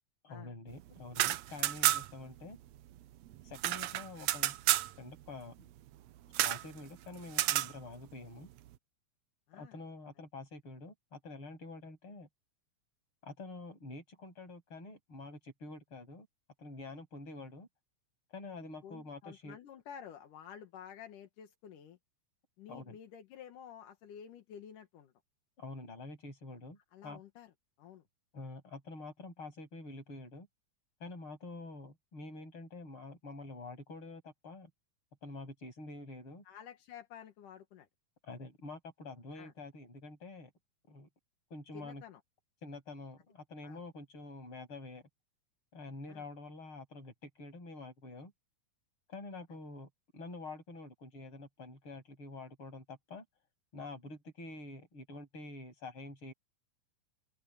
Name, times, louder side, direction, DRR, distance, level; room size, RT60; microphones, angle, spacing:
voice 1, 0.2-2.6 3.4-4.5 5.0-5.7 6.4-8.5 9.6-12.3 13.2-16.3 16.6-17.7 18.3-19.6 22.7-23.0 25.6-27.2 28.3-30.5 31.0-34.7 35.2-36.4 38.2-40.5 40.9-41.1 41.5-42.0 42.6-45.0 45.7-48.3 49.1-53.2 53.7-56.3, left 2 dB, 40° left, 7.9 m, -47 dB
sound 1, 1.0-2.3 2.5-2.6 2.9-4.9 6.3-6.7 7.3-7.7, right 14 dB, 75° right, 1.7 m, -30 dB
voice 2, 18.8-22.0 22.6-25.1 26.9-27.5 27.8-28.0 36.4-37.9 39.3-39.5 41.7-42.2 43.6-43.8 46.1-46.2, left 8 dB, 80° left, 3.1 m, -51 dB
open air
omnidirectional pair, 3.6 m